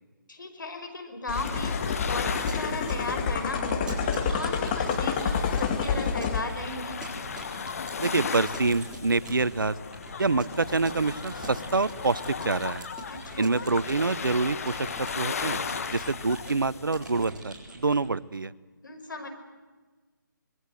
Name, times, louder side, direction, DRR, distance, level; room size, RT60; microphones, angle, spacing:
voice 1, 0.3-7.0 13.1-13.6 18.8-19.3, left 2 dB, 70° left, 7 dB, 4.9 m, -36 dB
sound 1, 1.3-17.3, left 6 dB, 45° left, 1.3 m, -36 dB
sound 2, 1.3-6.4, left 6 dB, 25° left, 1.7 m, -28 dB
Keyboard (musical) / Computer keyboard, 2.0-18.1, right 2 dB, 5° right, 4.2 m, -44 dB
voice 2, 8.0-9.7 10.2-12.8 13.4-18.5, right 3 dB, 80° right, 18 dB, 0.9 m, -26 dB
25.5 x 21.0 x 7.8 m, 1.3 s
figure-of-eight pair, 155°, 11 cm